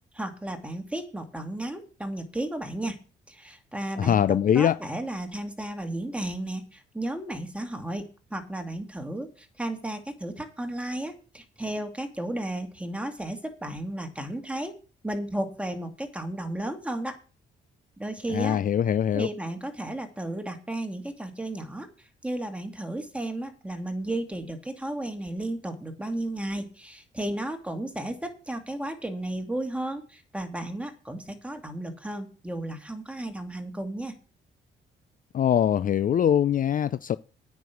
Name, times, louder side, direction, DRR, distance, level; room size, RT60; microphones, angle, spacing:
voice 1, 0.1-3.0 3.3-8.0 8.3-14.7 15.0-17.2 18.0-18.6 19.1-34.2, right 1 dB, 5° right, 2.4 m, -34 dB
voice 2, 4.0-4.8 18.3-19.3 35.3-37.2, left 9 dB, 45° left, 0.4 m, -23 dB
9.2 x 6.2 x 8.5 m
cardioid pair, 90°, 20 cm